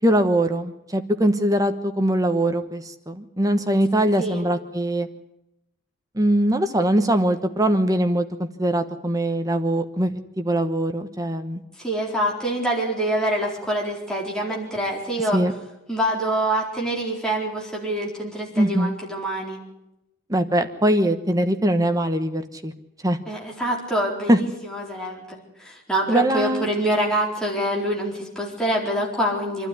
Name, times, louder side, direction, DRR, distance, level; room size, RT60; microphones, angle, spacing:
voice 1, 0.0-5.1 6.1-11.6 15.3-15.5 18.6-18.9 20.3-22.7 23.0-23.2 24.3-24.4 26.1-26.7, right 1 dB, 15° right, 8 dB, 1.2 m, -22 dB
voice 2, 11.8-15.4 15.9-19.6 23.3-29.7, right 1 dB, 5° left, -3 dB, 4.3 m, -25 dB
26.5 x 12.5 x 9.9 m, 0.88 s
head